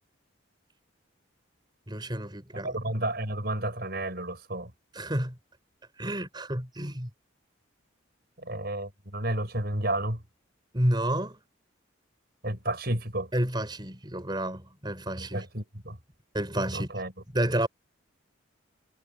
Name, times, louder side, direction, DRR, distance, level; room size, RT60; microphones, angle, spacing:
voice 1, 1.9-2.8 4.9-5.3 6.0-7.1 10.7-11.4 13.3-15.4 16.3-16.9 17.3-17.7, right 1 dB, 20° right, 5.1 m, -30 dB
voice 2, 2.5-4.7 8.4-10.2 12.4-13.3 15.2-16.0 16.7-17.1, right 1 dB, 50° right, 6.4 m, -31 dB
head